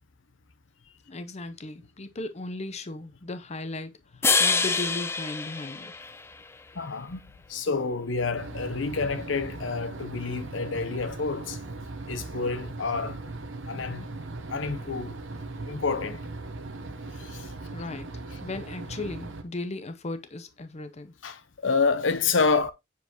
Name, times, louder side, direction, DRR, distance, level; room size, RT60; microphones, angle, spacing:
voice 1, 1.1-5.9 17.7-18.1 18.4-21.1, left 2 dB, 35° left, 0.7 m, -36 dB
sound 1, 4.2-6.6, left 4 dB, 15° left, 0.3 m, -26 dB
voice 2, 6.7-7.2 7.5-11.6 12.1-13.2 13.7-14.1 14.5-15.2 15.7-16.2 17.1-17.5 21.2-22.7, left 4 dB, 85° left, 0.8 m, -28 dB
sound 2, 8.3-19.4, right 2 dB, 80° right, 0.9 m, -39 dB
7.1 x 4.7 x 2.9 m
head